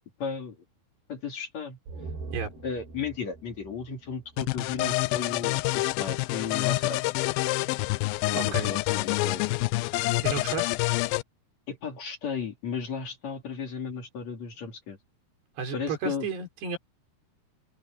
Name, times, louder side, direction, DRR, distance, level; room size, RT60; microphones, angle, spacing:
voice 1, 0.2-0.6 1.1-1.8 2.6-7.0 8.3-9.7 11.7-15.0 15.7-16.3, left 6 dB, 45° left, 3.6 m, -34 dB
sound 1, 1.9-5.3 5.6-5.7, right 3 dB, 70° right, 9.2 m, -43 dB
sound 2, 4.4-11.2, left 21 dB, 85° left, 2.1 m, -27 dB
voice 2, 8.4-8.7 10.2-10.7 15.6-16.8, right 5 dB, 85° right, 6.4 m, -32 dB
omnidirectional pair, 4.7 m